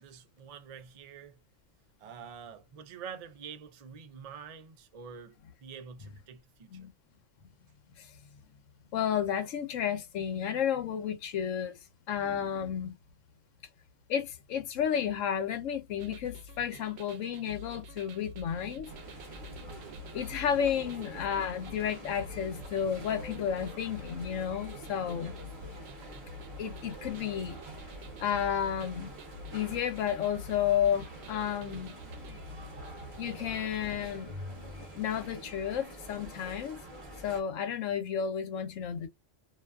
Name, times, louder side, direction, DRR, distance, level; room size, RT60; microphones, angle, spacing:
voice 1, 0.0-1.4 2.0-5.4 5.6-6.9, right 7 dB, 60° right, 0.4 m, -46 dB
voice 2, 8.9-13.0 14.1-18.9 20.1-25.5 26.6-27.6 28.2-29.1 29.5-32.0 33.2-34.5 34.9-36.8 37.2-39.1, left 8 dB, 80° left, 1.0 m, -32 dB
sound 1, 16.0-34.2, left 1 dB, 90° right, 1.0 m, -47 dB
sound 2, 18.8-37.4, right 1 dB, 30° right, 0.7 m, -47 dB
2.5 x 2.3 x 2.3 m
omnidirectional pair, 1.3 m